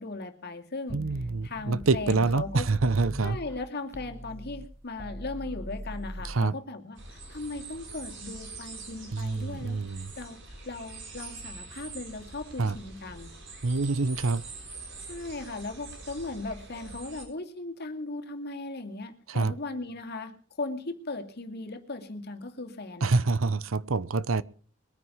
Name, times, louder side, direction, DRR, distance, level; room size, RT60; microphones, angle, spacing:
voice 1, 0.0-1.0 1.4-2.7 3.2-10.4 10.6-13.3 15.1-23.3, left 2 dB, 50° left, 2.4 m, -38 dB
sound 1, 0.9-3.6 3.9-6.3, equal, 10° right, 1.3 m, -41 dB
voice 2, 0.9-3.4 6.2-6.6 9.1-10.1 12.6-12.8 13.6-14.4 19.3-19.5 23.0-24.4, right 3 dB, 80° right, 0.8 m, -26 dB
sound 2, 6.9-17.2, right 3 dB, 60° right, 6.6 m, -44 dB
22.0 x 9.7 x 5.7 m
head